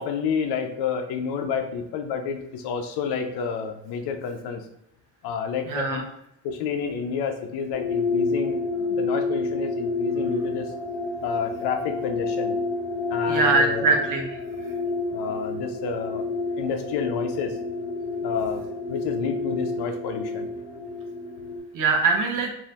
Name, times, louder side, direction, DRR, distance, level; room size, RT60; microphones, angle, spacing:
voice 1, 0.0-4.6 5.2-6.0 6.4-10.7 11.2-12.5 13.1-13.9 15.1-16.3 16.6-17.6 18.2-18.6 18.9-20.5, left 6 dB, 70° left, 6 dB, 0.6 m, -29 dB
voice 2, 5.7-6.0 13.3-14.4 21.7-22.5, right 3 dB, 50° right, 2 dB, 0.7 m, -22 dB
sound 1, 7.7-21.6, left 3 dB, 25° left, 1.2 m, -29 dB
2.7 x 2.6 x 3.2 m, 0.76 s
supercardioid pair, 80°, 41 cm